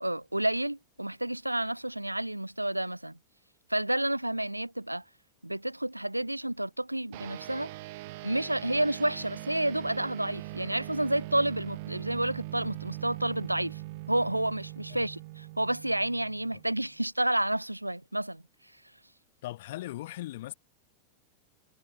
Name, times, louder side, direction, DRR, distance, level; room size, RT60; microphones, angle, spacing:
voice 1, 0.0-3.2 3.7-5.0 5.4-7.7 8.2-13.8 14.1-18.4, right 1 dB, 85° right, 0.8 m, -30 dB
sound 1, 7.1-16.9, right 20 dB, 50° right, 1.5 m, -42 dB
voice 2, 19.4-20.5, left 16 dB, 55° left, 3.7 m, -38 dB
figure-of-eight pair, 90°, 0 cm